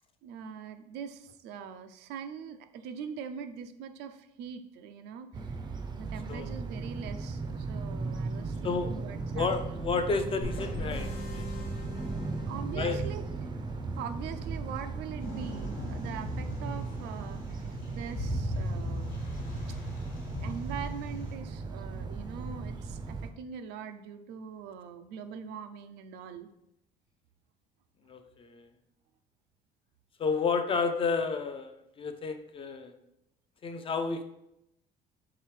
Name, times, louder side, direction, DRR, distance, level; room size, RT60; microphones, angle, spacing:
voice 1, 0.2-5.6 5.9-9.8 12.5-13.3 14.0-19.2 20.4-26.5, right 7 dB, 85° right, 8 dB, 0.4 m, -42 dB
sound 1, 5.3-23.3, right 4 dB, 25° right, 0.4 m, -37 dB
voice 2, 9.3-11.5 12.7-13.0 28.1-28.7 30.2-31.7 32.0-32.9 33.6-34.2, left 4 dB, 30° left, 7 dB, 0.4 m, -31 dB
sound 2, 10.4-13.2, left 2 dB, 75° left, 0.9 m, -40 dB
sound 3, 15.2-21.3, left 1 dB, 55° left, 1.3 m, -38 dB
4.7 x 3.3 x 3.2 m, 0.82 s
cardioid pair, 110°, 17 cm